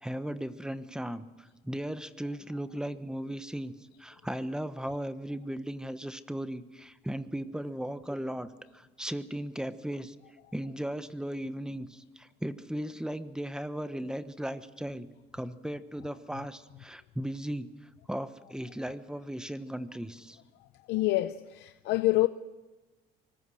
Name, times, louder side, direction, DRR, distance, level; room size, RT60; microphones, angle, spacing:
voice 1, 0.0-3.7 4.0-10.1 10.5-15.1 15.3-17.7 18.1-20.4, right 1 dB, 5° right, 1.2 m, -37 dB
voice 2, 20.9-22.3, left 18 dB, 85° left, 0.7 m, -26 dB
25.0 x 20.0 x 6.5 m
cardioid pair, 110°, 17 cm